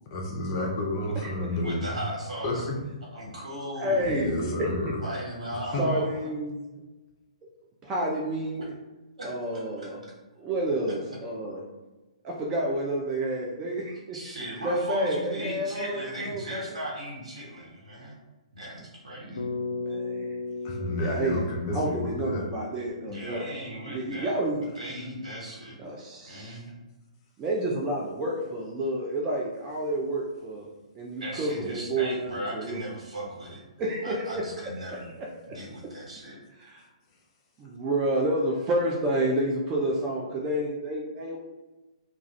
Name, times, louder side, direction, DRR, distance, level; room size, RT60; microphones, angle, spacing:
voice 1, 0.1-2.0 2.4-2.6 4.0-5.0 5.5-5.9 20.6-22.5, left 1 dB, 35° left, 0 dB, 0.6 m, -31 dB
voice 2, 1.6-2.7 3.1-4.1 5.0-6.2 8.6-8.7 9.2-9.3 14.1-18.2 18.5-19.5 23.0-24.3 24.7-25.8 26.3-26.7 31.2-33.6 34.0-35.1 35.5-36.4, equal, 75° right, -5 dB, 1.3 m, -37 dB
voice 3, 3.8-4.7 5.8-6.6 7.8-8.6 9.2-10.0 10.4-11.6 12.2-14.2 14.6-16.7 19.7-20.3 21.0-21.4 21.7-23.4 23.9-24.6 25.8-26.6 27.4-30.7 30.9-32.8 33.8-34.3 35.0-35.1 36.6-36.8 37.6-41.4, right 1 dB, 20° right, -2 dB, 0.4 m, -29 dB
Bass guitar, 19.4-23.7, left 3 dB, 85° left, 0.3 m, -36 dB
2.4 x 2.3 x 3.1 m, 1.1 s
figure-of-eight pair, 125°, 4 cm